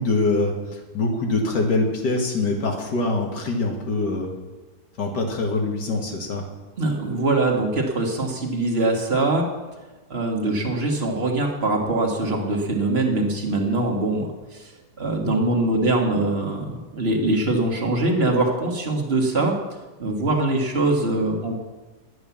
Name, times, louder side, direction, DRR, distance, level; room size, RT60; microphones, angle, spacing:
voice 1, 0.0-4.3 5.0-6.5, left 2 dB, 80° left, 2 dB, 2.5 m, -24 dB
voice 2, 6.8-9.4 10.1-14.7 15.0-19.5 20.0-21.5, right 2 dB, 35° right, 1 dB, 1.9 m, -23 dB
11.0 x 9.4 x 7.2 m, 1.2 s
omnidirectional pair, 1.8 m